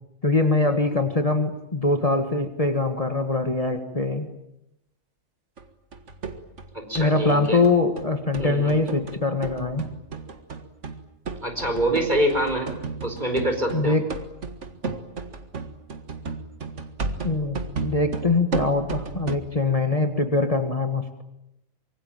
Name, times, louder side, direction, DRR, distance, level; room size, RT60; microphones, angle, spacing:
voice 1, 0.2-4.3 7.0-9.9 13.7-14.1 17.2-21.1, left 3 dB, 30° left, 6 dB, 1.8 m, -23 dB
sound 1, 5.6-5.7 5.9-19.4, right 4 dB, 70° right, 2.1 m, -34 dB
voice 2, 6.7-7.6 8.4-8.7 11.4-12.7 13.0-14.0, right 1 dB, 35° right, 6 dB, 4.8 m, -25 dB
25.5 x 24.0 x 9.0 m, 0.81 s
omnidirectional pair, 1.3 m